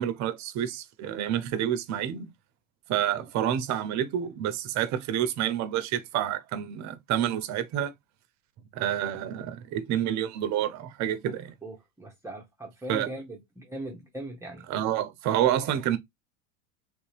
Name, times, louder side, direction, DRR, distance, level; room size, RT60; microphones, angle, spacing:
voice 1, 0.0-2.3 2.9-7.9 8.7-11.5 12.9-13.1 14.7-16.0, right 10 dB, 45° right, 0.8 m, -28 dB
voice 2, 11.6-14.7, right 1 dB, 5° right, 0.9 m, -40 dB
3.4 x 2.7 x 3.2 m
hypercardioid pair, 100°, 38 cm